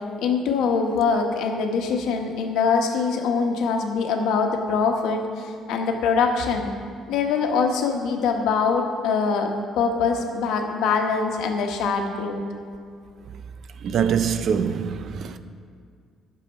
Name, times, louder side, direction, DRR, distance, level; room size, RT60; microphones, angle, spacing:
voice 1, 0.2-6.7 7.1-9.5 9.8-12.4, left 5 dB, 80° left, 1.2 m, -23 dB
voice 2, 13.8-15.4, right 7 dB, 50° right, 0.5 m, -24 dB
12.0 x 6.8 x 5.4 m
cardioid pair, 150°, 0 cm